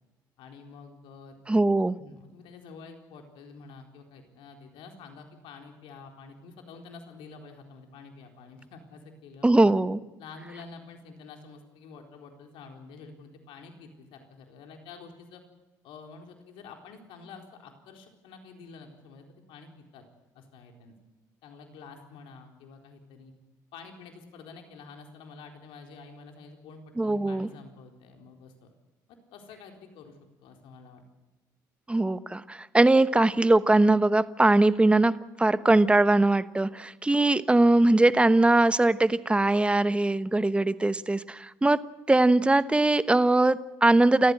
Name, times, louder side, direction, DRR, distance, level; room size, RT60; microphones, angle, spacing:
voice 1, 0.4-1.4 2.0-9.7 10.2-15.4 15.8-20.0 20.3-20.9 21.4-23.3 23.7-28.7 29.1-31.0, left 4 dB, 70° left, 4 dB, 4.1 m, -48 dB
voice 2, 1.5-1.9 9.4-10.0 27.0-27.5 31.9-41.8 42.1-44.3, right 2 dB, 10° right, 15 dB, 1.0 m, -21 dB
29.0 x 14.5 x 7.9 m, 1.1 s
hypercardioid pair, 65°, 9 cm